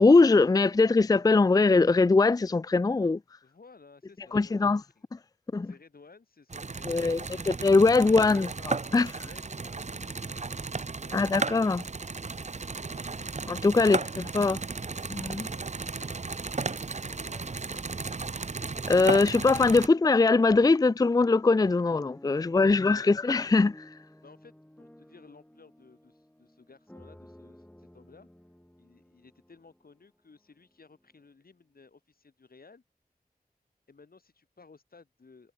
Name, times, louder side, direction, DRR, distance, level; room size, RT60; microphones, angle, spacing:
voice 1, 0.0-3.2 4.3-4.8 5.5-5.7 6.9-7.2 7.5-9.2 11.1-11.9 13.5-14.0 14.3-14.6 15.1-15.4 18.9-23.7, left 3 dB, 25° left, 0.4 m, -22 dB
voice 2, 3.4-5.0 5.6-7.8 8.1-8.5 9.2-11.2 12.8-13.3 15.4-16.5 16.8-17.8 22.4-23.2 24.2-28.3 28.8-32.8 33.9-35.5, left 4 dB, 70° left, 5.7 m, -56 dB
sound 1, 6.5-19.9, right 4 dB, 45° right, 1.0 m, -35 dB
sound 2, 21.9-30.0 30.6-30.7 31.0-31.2, left 1 dB, 10° left, 2.8 m, -54 dB
wide cardioid pair, 60°, 16 cm